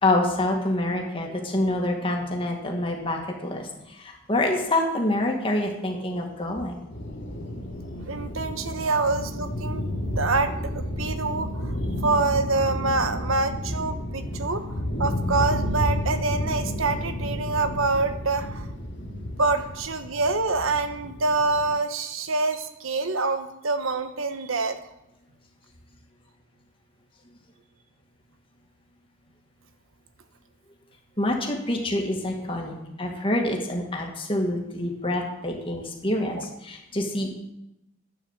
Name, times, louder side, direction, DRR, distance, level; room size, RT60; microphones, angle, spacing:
voice 1, 0.0-6.9 31.2-37.3, left 1 dB, 25° left, 1 dB, 2.1 m, -26 dB
sound 1, 6.9-21.7, left 1 dB, 55° left, 2.4 m, -31 dB
voice 2, 8.1-9.8 10.2-11.8 12.0-14.7 15.0-18.7 19.4-24.8 36.4-36.5, right 3 dB, 70° right, 9 dB, 1.1 m, -26 dB
11.0 x 9.2 x 7.3 m, 0.88 s
head